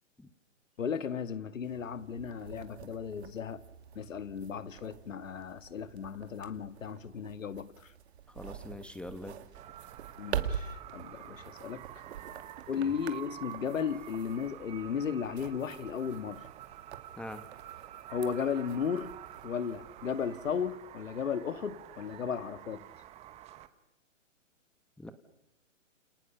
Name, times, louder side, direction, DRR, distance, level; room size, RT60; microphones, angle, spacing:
voice 1, 0.8-3.6 3.9-7.9 10.2-12.0 12.7-16.4 18.1-19.1 19.4-22.8, left 7 dB, 80° left, 2.0 m, -35 dB
sound 1, 1.6-20.7, right 9 dB, 55° right, 2.5 m, -45 dB
voice 2, 8.3-9.4 12.8-12.9 17.2-17.4 25.0-25.1, left 1 dB, 5° left, 1.1 m, -43 dB
sound 2, 9.5-23.7, right 13 dB, 15° right, 1.2 m, -49 dB
29.5 x 28.5 x 7.0 m
hypercardioid pair, 145°, 38 cm